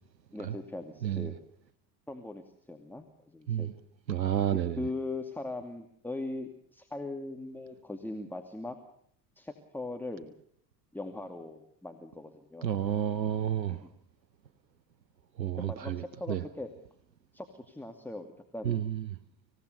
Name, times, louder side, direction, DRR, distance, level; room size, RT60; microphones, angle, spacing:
voice 1, 0.3-1.4 2.1-3.7 4.8-8.8 9.4-10.3 10.9-12.7 13.7-13.9 15.7-16.7 17.3-18.3 18.5-18.8, left 2 dB, 5° left, 2.3 m, -40 dB
voice 2, 4.1-4.8 12.6-13.8 15.4-16.4 18.6-19.0, right 10 dB, 90° right, 0.8 m, -30 dB
26.0 x 17.0 x 6.7 m
figure-of-eight pair, 60°, 49 cm